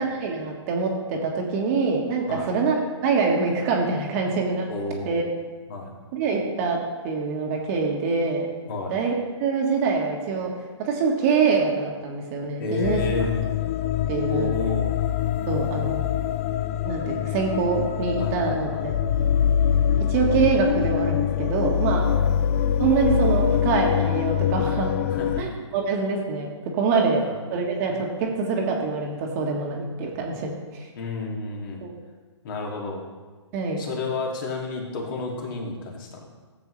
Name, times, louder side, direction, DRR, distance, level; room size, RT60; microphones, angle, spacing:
voice 1, 0.0-2.7 3.0-4.7 5.0-5.2 6.1-6.8 7.0-8.5 8.9-9.1 9.4-10.5 10.8-13.0 13.8-14.5 15.5-16.1 16.8-18.9 20.1-22.0 22.8-24.9 25.4-27.2 27.5-30.9 31.8-32.0 33.5-33.8, right 5 dB, 30° right, 0 dB, 1.6 m, -25 dB
voice 2, 4.7-5.3 5.7-5.9 8.7-8.9 12.6-13.4 14.3-14.9 18.2-18.8 22.0-22.2 25.0-25.6 27.1-27.3 31.0-31.8 32.4-33.0 33.8-36.3, left 3 dB, 45° left, -1 dB, 2.4 m, -31 dB
sound 1, 12.8-25.4, left 9 dB, 30° left, 0.3 m, -24 dB
13.5 x 7.8 x 3.3 m, 1.4 s
hypercardioid pair, 140°, 15 cm